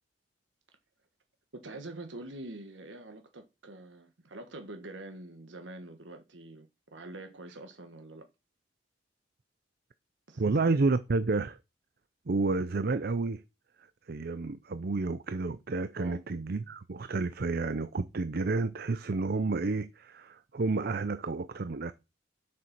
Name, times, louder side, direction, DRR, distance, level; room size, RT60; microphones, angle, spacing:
voice 1, 1.5-8.3 10.3-10.4 15.9-16.2, right 2 dB, 80° right, 1.4 m, -45 dB
voice 2, 10.4-11.6 12.3-13.4 14.1-21.9, right 3 dB, 55° right, 0.6 m, -30 dB
7.6 x 6.6 x 5.9 m
head